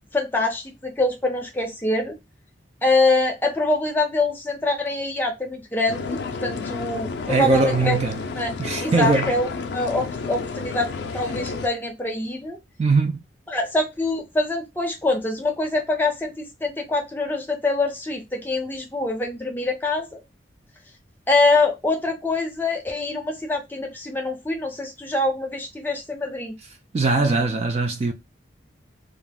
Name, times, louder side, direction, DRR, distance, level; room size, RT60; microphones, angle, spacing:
voice 1, 0.1-2.2 2.8-8.0 8.4-8.5 8.8-12.6 13.5-20.2 21.3-26.6, left 2 dB, 10° left, 0.6 m, -24 dB
sound 1, 5.9-11.7, left 4 dB, 65° left, 0.4 m, -31 dB
voice 2, 7.3-8.2 8.6-9.3 12.8-13.2 26.9-28.1, right 3 dB, 35° right, 0.3 m, -21 dB
2.4 x 2.1 x 3.4 m
head